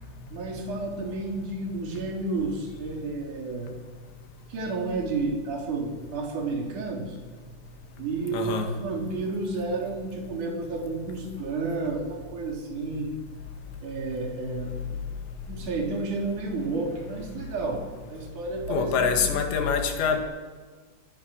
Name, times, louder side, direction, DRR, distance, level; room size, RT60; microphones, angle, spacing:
voice 1, 0.3-3.7 4.5-7.2 8.0-8.6 8.8-13.1 13.8-15.1 15.5-17.8 18.1-19.7, right 3 dB, 45° right, 0 dB, 4.8 m, -31 dB
voice 2, 8.3-8.7 18.7-20.2, left 6 dB, 80° left, 4 dB, 4.4 m, -25 dB
25.5 x 17.0 x 6.4 m, 1.4 s
omnidirectional pair, 5.1 m